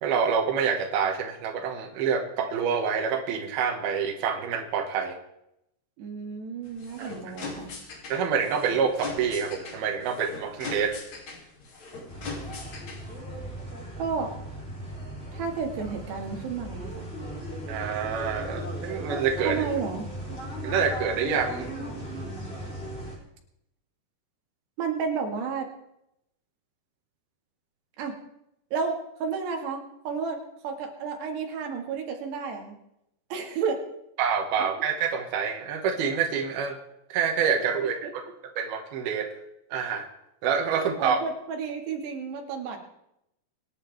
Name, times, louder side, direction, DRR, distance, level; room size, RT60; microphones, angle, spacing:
voice 1, 0.0-5.2 7.0-7.1 8.1-11.0 17.7-19.6 20.6-21.6 34.2-36.8 37.1-38.2 38.6-39.3 39.7-40.1 40.4-41.2, right 6 dB, 70° right, 2 dB, 3.5 m, -27 dB
voice 2, 6.0-7.7 14.0-14.3 15.3-17.1 19.4-20.1 24.8-25.7 28.0-28.2 28.7-30.4 30.6-32.8 33.3-33.8 37.8-38.1 40.8-42.8, right 5 dB, 90° right, 2 dB, 4.2 m, -32 dB
sound 1, 6.6-13.2, left 3 dB, 45° left, 3.9 m, -40 dB
sound 2, 12.1-23.2, equal, 15° left, 3.6 m, -37 dB
25.0 x 11.0 x 3.5 m, 0.80 s
omnidirectional pair, 4.7 m